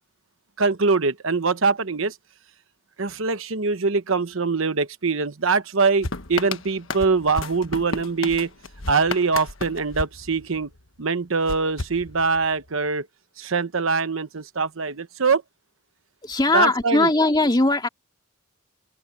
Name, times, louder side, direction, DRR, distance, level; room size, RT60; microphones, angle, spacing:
voice 1, 0.6-2.1 3.0-8.5 8.9-10.7 11.0-13.1 13.4-15.4 16.5-17.1, right 4 dB, 75° right, 1.0 m, -23 dB
sound 1, 6.0-10.9 11.5-12.7, left 3 dB, 70° left, 1.4 m, -33 dB
voice 2, 16.2-17.9, left 2 dB, 20° left, 2.5 m, -19 dB
open air
head